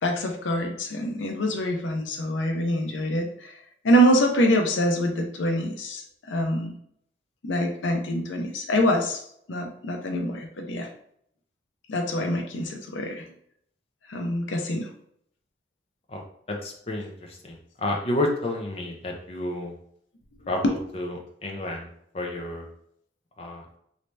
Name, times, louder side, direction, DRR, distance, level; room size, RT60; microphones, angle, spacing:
voice 1, 0.0-3.6 3.8-6.8 7.4-9.2 9.5-10.9 11.9-13.2 14.1-14.9 20.6-20.7, equal, 90° left, 4 dB, 0.6 m, -25 dB
voice 2, 16.1-19.7 20.5-21.9 22.1-22.7 23.4-23.6, left 1 dB, 30° left, 1 dB, 0.5 m, -31 dB
3.1 x 2.7 x 3.2 m, 0.68 s
head